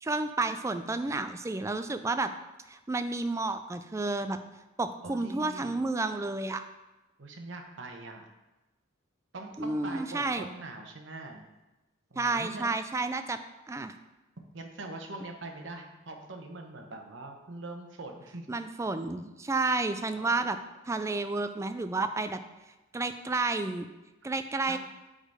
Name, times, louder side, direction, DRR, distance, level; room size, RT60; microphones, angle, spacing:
voice 1, 0.0-2.3 2.7-4.4 4.8-6.6 9.6-10.4 12.2-13.4 13.7-13.9 18.5-20.6 20.8-22.4 22.9-23.9 24.2-24.8, right 3 dB, 15° right, 9 dB, 0.3 m, -31 dB
voice 2, 5.0-5.7 7.2-8.3 9.3-11.5 12.1-12.7 14.5-18.5 20.1-20.5 24.7-24.8, right 2 dB, 65° right, 3 dB, 1.0 m, -43 dB
6.5 x 5.0 x 4.9 m, 1.0 s
head